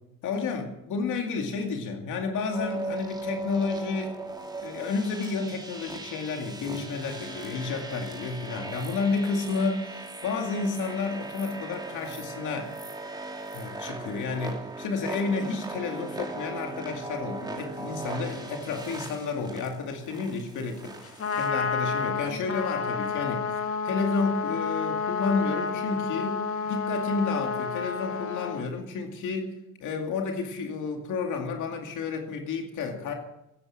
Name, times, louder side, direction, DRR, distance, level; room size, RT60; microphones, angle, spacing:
voice 1, 0.2-4.2 4.6-12.7 13.5-23.4 23.8-26.4 26.6-29.5 29.8-33.1, left 4 dB, 80° left, 3 dB, 2.3 m, -31 dB
sound 1, 2.5-21.5, right 2 dB, 15° right, 2.5 m, -39 dB
Trumpet, 21.0-28.6, left 5 dB, 50° left, 1.7 m, -30 dB
15.5 x 9.8 x 7.2 m, 0.87 s
cardioid pair, 90°, 30 cm